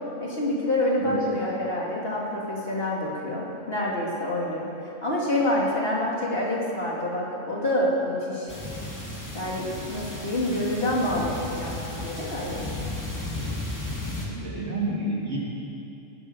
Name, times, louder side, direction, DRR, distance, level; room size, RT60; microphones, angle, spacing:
voice 1, 0.2-8.5 9.3-12.6, left 1 dB, 50° left, -4 dB, 2.8 m, -27 dB
sound 1, 8.5-14.3, left 2 dB, 15° left, 2.3 m, -34 dB
voice 2, 14.2-15.4, right 2 dB, 55° right, -4 dB, 2.9 m, -30 dB
18.0 x 10.0 x 6.8 m, 2.9 s
omnidirectional pair, 1.3 m